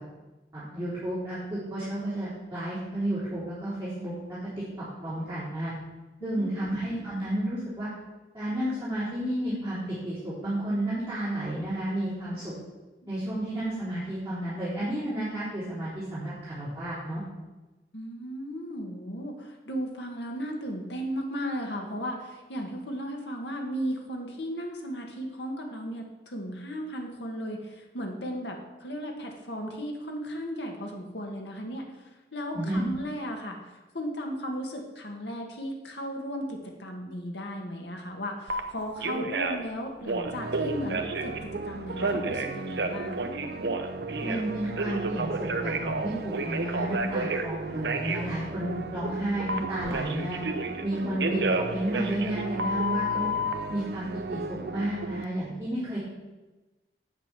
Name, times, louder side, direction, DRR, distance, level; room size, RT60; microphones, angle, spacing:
voice 1, 0.5-4.4 4.8-5.7 6.2-7.9 8.3-12.5 13.1-17.2 32.5-32.8 44.2-50.4 50.8-53.3 53.7-56.0, right 1 dB, 15° right, -12 dB, 3.6 m, -32 dB
voice 2, 6.2-6.7 17.9-43.3 51.0-51.2, equal, 85° left, 2 dB, 1.8 m, -36 dB
Telephone, 38.5-38.6 39.0-39.7 40.0-41.4 42.0-44.4 44.8-47.5 47.8-48.2 49.5-50.8 51.2-53.5, right 2 dB, 75° right, 0.9 m, -30 dB
sound 1, 40.2-55.2, right 3 dB, 60° right, 0.5 m, -37 dB
8.1 x 7.3 x 6.1 m, 1.2 s
head